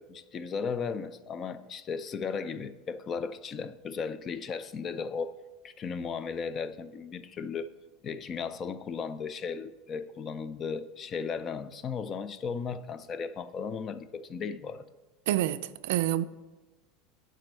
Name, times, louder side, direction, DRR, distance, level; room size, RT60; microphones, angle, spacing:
voice 1, 0.0-5.4 5.6-7.7 8.0-14.8, left 5 dB, 20° left, 0.3 m, -36 dB
voice 2, 15.3-16.2, right 13 dB, 65° right, 0.3 m, -27 dB
7.5 x 5.1 x 6.5 m
supercardioid pair, 175°, 0 cm